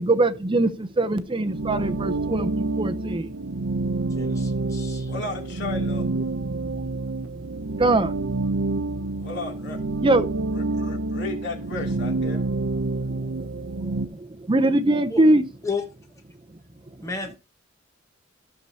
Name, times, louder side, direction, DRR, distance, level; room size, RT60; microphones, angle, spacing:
voice 1, 0.0-2.5 2.8-3.3 7.8-8.1 10.0-10.2 14.5-15.4, right 2 dB, 25° right, 0.6 m, -21 dB
sound 1, 1.4-14.1, right 2 dB, 80° right, 0.6 m, -28 dB
voice 2, 4.2-5.1 15.1-15.2 15.6-15.9 17.0-17.4, left 4 dB, 15° left, 1.0 m, -32 dB
voice 3, 5.1-6.0 9.2-9.8 10.5-12.5, left 3 dB, 60° left, 2.9 m, -34 dB
14.5 x 6.8 x 2.8 m
head